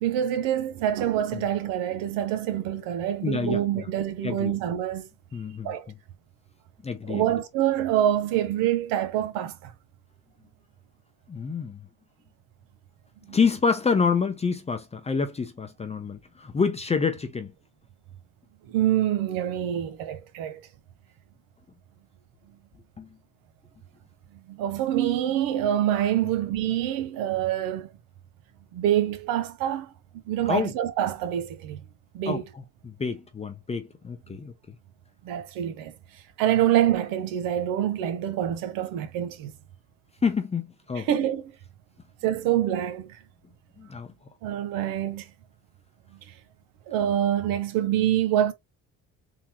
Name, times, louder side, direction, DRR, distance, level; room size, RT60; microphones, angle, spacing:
voice 1, 0.0-5.0 5.6-5.9 7.1-9.7 13.3-13.4 18.7-20.7 24.5-27.9 28.7-29.9 30.3-31.8 32.1-32.4 35.2-35.9 36.4-39.5 40.9-41.5 42.2-43.1 44.4-45.3 46.9-48.5, right 11 dB, 85° right, 0.8 m, -26 dB
voice 2, 3.2-3.9 4.2-4.5 5.3-5.7 6.8-7.2 11.3-11.8 13.3-17.5 23.0-23.1 26.2-26.3 30.5-30.7 32.3-34.8 40.2-41.1 43.8-44.1, left 5 dB, 20° left, 0.6 m, -28 dB
3.7 x 2.8 x 2.8 m
cardioid pair, 110°, 32 cm